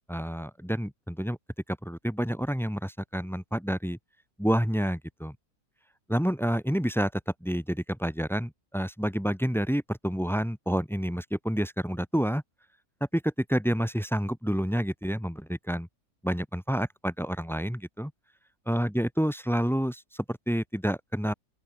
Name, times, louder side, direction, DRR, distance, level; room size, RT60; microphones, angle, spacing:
voice 1, 0.1-1.4 1.8-4.0 4.4-5.3 6.1-7.1 7.4-12.4 13.1-15.9 16.2-18.1 18.7-21.3, equal, ahead, 1.7 m, -29 dB
open air
omnidirectional pair, 1.7 m